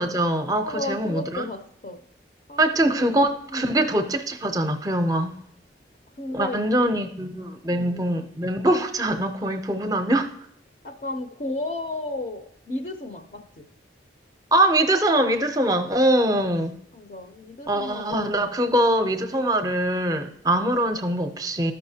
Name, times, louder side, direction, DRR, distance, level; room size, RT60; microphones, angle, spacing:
voice 1, 0.0-1.5 2.6-5.3 6.3-10.3 14.5-16.7 17.7-21.7, right 1 dB, 20° right, 0.6 m, -23 dB
voice 2, 0.6-2.0 2.5-2.6 2.9-3.1 3.5-3.8 6.2-6.6 7.7-8.3 10.8-13.7 16.9-18.4, left 2 dB, 45° left, 0.6 m, -33 dB
13.5 x 5.5 x 2.8 m
head